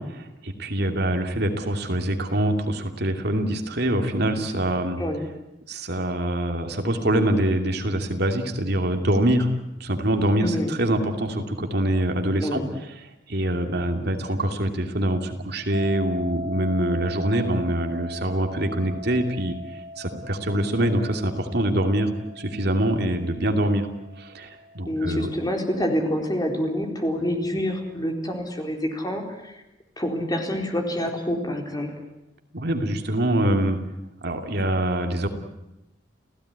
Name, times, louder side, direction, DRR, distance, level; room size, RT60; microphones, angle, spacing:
voice 1, 0.0-5.0 5.7-9.5 9.8-12.6 13.3-19.5 20.0-22.1 22.4-23.9 24.2-25.3 32.5-33.8 34.2-35.3, right 1 dB, 55° right, 5 dB, 2.8 m, -24 dB
voice 2, 10.4-10.7 12.4-12.7 24.9-29.6 30.0-31.9, equal, 20° left, 2 dB, 4.3 m, -27 dB
sound 1, 15.7-26.6, left 1 dB, 60° left, 1.6 m, -40 dB
30.0 x 16.5 x 9.8 m, 0.93 s
head